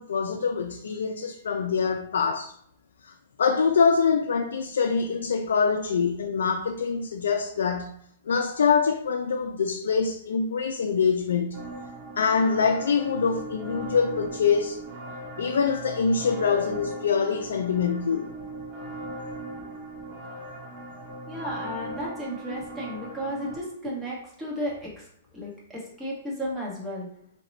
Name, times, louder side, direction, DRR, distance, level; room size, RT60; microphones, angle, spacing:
voice 1, 0.0-2.5 3.0-7.9 8.3-11.6 12.2-14.8 15.4-18.3, left 5 dB, 80° left, 0.3 m, -24 dB
sound 1, 11.5-23.6, right 1 dB, 40° right, 1.1 m, -39 dB
voice 2, 21.3-25.0 25.3-27.1, equal, 10° right, 1.3 m, -34 dB
2.9 x 2.8 x 4.1 m
hypercardioid pair, 140°, 0 cm